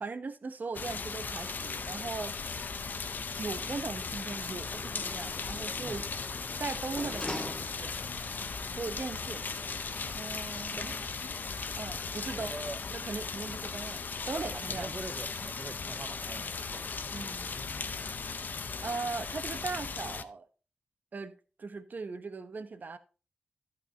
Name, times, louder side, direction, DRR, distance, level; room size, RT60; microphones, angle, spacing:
voice 1, 0.0-2.3 3.3-6.0 6.6-7.9 8.7-9.8 10.1-11.0 11.8-12.5 12.9-14.9 17.1-17.5 18.8-20.5 21.1-23.0, right 4 dB, 55° right, 1.0 m, -39 dB
sound 1, 0.7-20.2, left 5 dB, 60° left, 0.7 m, -37 dB
Sliding door, 4.1-8.2 8.6-8.7, left 1 dB, 25° left, 2.2 m, -44 dB
voice 2, 12.3-12.8 14.5-17.0, right 2 dB, 35° right, 0.7 m, -44 dB
11.5 x 5.6 x 4.2 m
cardioid pair, 60°, 3 cm